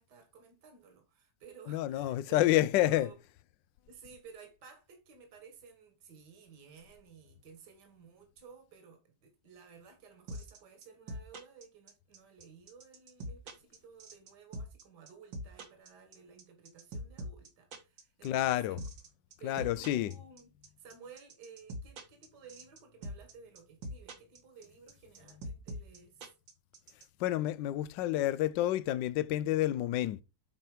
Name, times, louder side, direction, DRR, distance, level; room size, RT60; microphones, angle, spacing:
voice 1, 0.0-2.5 2.8-3.2 3.9-18.8 19.4-20.5 20.8-26.3, right 6 dB, 65° right, 2.1 m, -55 dB
voice 2, 1.7-3.1 18.2-18.8 19.4-20.1 27.2-30.2, left 14 dB, 80° left, 1.3 m, -29 dB
sound 1, 10.3-27.0, equal, 85° right, 2.3 m, -42 dB
8.1 x 4.5 x 4.8 m
omnidirectional pair, 2.0 m